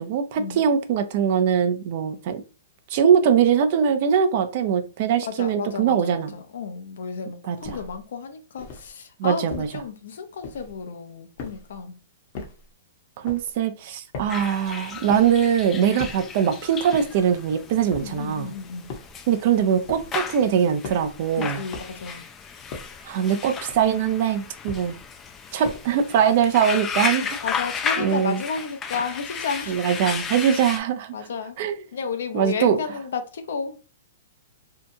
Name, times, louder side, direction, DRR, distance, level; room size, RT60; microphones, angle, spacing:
voice 1, 0.0-2.4 2.9-6.3 7.4-7.8 9.2-9.7 13.2-18.5 19.3-21.6 23.1-25.0 25.5-27.3 28.0-28.4 29.7-31.1 31.6-31.7 32.3-32.8, right 8 dB, 50° right, 0.5 m, -22 dB
voice 2, 5.2-12.0 15.9-16.0 18.0-18.9 21.4-22.3 27.2-29.9 31.1-31.5 31.9-33.8, left 5 dB, 70° left, 0.6 m, -32 dB
sound 1, 7.6-8.0 8.6-8.9 9.5-9.9 10.4-10.8 11.4-11.8 12.3-12.7 13.2-13.6 14.1-14.5 15.1-15.5 16.0-16.4 16.9-17.3 17.9-18.3 18.9-19.3 19.9-20.3 20.8-21.2 21.7-22.1 22.7-23.1 23.7-24.1 24.7-25.1 25.6-26.1, left 4 dB, 45° left, 0.8 m, -39 dB
sound 2, 14.3-30.8, left 6 dB, 20° left, 0.4 m, -34 dB
2.7 x 2.3 x 2.7 m
hypercardioid pair, 145°, 0 cm